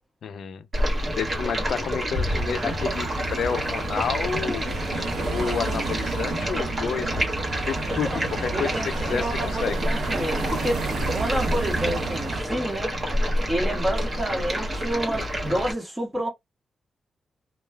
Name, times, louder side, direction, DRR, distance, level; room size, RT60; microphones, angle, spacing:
voice 1, 0.2-7.2 7.6-8.7 9.1-9.8, left 7 dB, 75° left, 0.4 m, -30 dB
Stream, 0.7-15.7, equal, 45° right, 1.4 m, -28 dB
sound 1, 2.3-12.4, right 4 dB, 80° right, 0.7 m, -32 dB
voice 2, 8.5-10.8 11.1-12.9 13.5-16.3, right 1 dB, 25° right, 1.4 m, -29 dB
3.2 x 2.3 x 2.2 m
cardioid pair, 55°, 0 cm